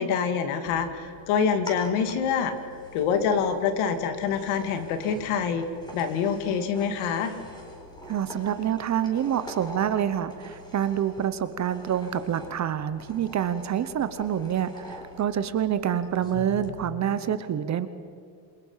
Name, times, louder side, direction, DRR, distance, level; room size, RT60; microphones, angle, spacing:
voice 1, 0.0-2.6 2.9-5.7 5.9-7.3, left 6 dB, 85° left, 8 dB, 2.5 m, -26 dB
sound 1, 0.7-16.7, left 1 dB, 10° left, 4.1 m, -45 dB
voice 2, 8.1-17.9, right 9 dB, 35° right, 12 dB, 0.9 m, -27 dB
27.5 x 22.5 x 5.7 m, 2.5 s
cardioid pair, 150°, 48 cm